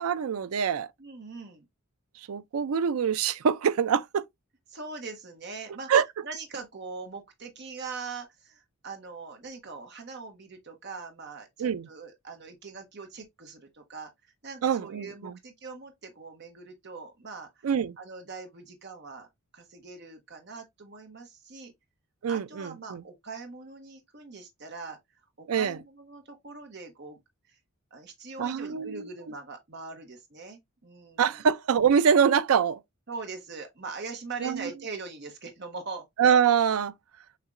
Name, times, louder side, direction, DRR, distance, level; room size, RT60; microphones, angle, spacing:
voice 1, 0.0-0.9 2.3-4.3 5.9-6.0 11.6-11.9 14.6-15.3 17.6-17.9 22.2-23.0 25.5-25.8 28.4-29.1 31.2-32.8 34.4-34.7 36.2-36.9, right 7 dB, 70° right, 0.4 m, -24 dB
voice 2, 1.0-1.7 4.7-5.9 6.2-17.7 18.0-19.3 19.5-21.7 22.3-25.0 25.4-27.2 27.5-27.6 27.9-31.5 33.1-36.1, right 4 dB, 50° right, 1.0 m, -42 dB
6.6 x 2.9 x 2.5 m
head